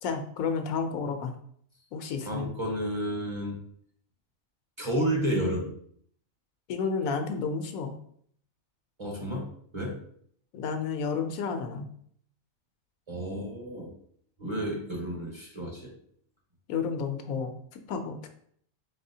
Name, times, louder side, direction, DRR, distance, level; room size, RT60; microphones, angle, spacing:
voice 1, 0.0-1.3 1.9-2.5 6.7-7.9 10.5-11.9 16.7-18.3, left 5 dB, 85° left, 6 dB, 1.1 m, -31 dB
voice 2, 2.2-3.6 4.8-5.7 9.0-9.5 9.7-10.0 13.1-13.9 14.4-15.9, equal, 25° right, -3 dB, 0.8 m, -31 dB
4.1 x 4.0 x 2.7 m, 0.64 s
omnidirectional pair, 1.4 m